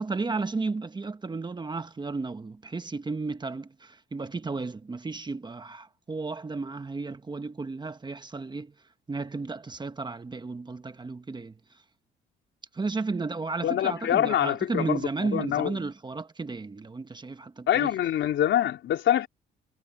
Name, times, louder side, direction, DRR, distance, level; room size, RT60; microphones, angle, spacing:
voice 1, 0.0-8.7 9.1-11.5 12.7-17.9, right 3 dB, 20° right, 1.3 m, -33 dB
voice 2, 13.6-15.8 17.7-19.3, left 11 dB, 65° left, 4.0 m, -25 dB
cardioid pair, 95°, 20 cm